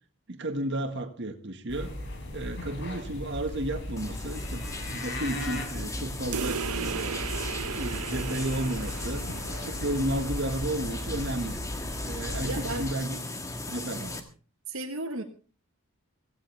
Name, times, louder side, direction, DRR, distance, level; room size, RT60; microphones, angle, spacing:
voice 1, 0.3-1.9 2.3-7.2 7.7-9.3 9.7-11.6 12.0-13.2 13.7-14.1, right 1 dB, 50° right, 7 dB, 1.7 m, -33 dB
sound 1, 1.7-12.9, left 1 dB, 55° left, 3.8 m, -37 dB
sound 2, 4.0-14.2, left 2 dB, 15° left, 1.5 m, -38 dB
sound 3, 6.3-11.4, right 6 dB, 90° right, 0.8 m, -37 dB
voice 2, 12.4-12.8 14.0-14.2 14.7-15.2, right 2 dB, 70° right, 4 dB, 1.5 m, -34 dB
16.5 x 16.0 x 3.5 m, 0.38 s
head